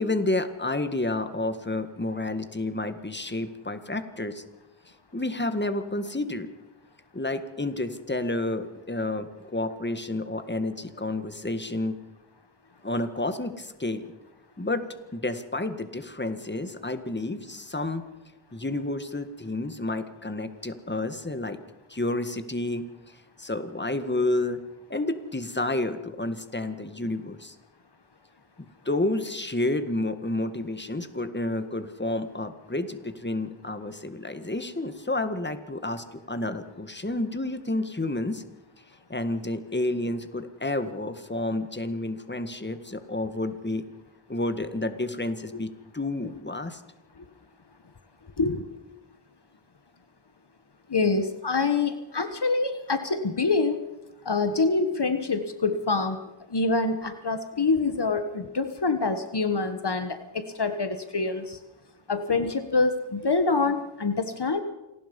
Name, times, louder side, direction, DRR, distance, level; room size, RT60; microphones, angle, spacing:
voice 1, 0.0-4.4 5.1-6.5 7.1-12.0 12.8-14.1 14.6-18.0 18.5-21.6 21.9-22.8 23.4-24.6 24.9-27.6 28.6-38.4 39.1-43.9 44.3-46.8, left 2 dB, 25° left, 9 dB, 1.8 m, -30 dB
voice 2, 50.9-53.8 54.2-56.2 56.5-61.6 62.1-64.6, left 3 dB, 55° left, 9 dB, 1.4 m, -26 dB
27.0 x 19.0 x 5.5 m, 1.0 s
wide cardioid pair, 50°, 47 cm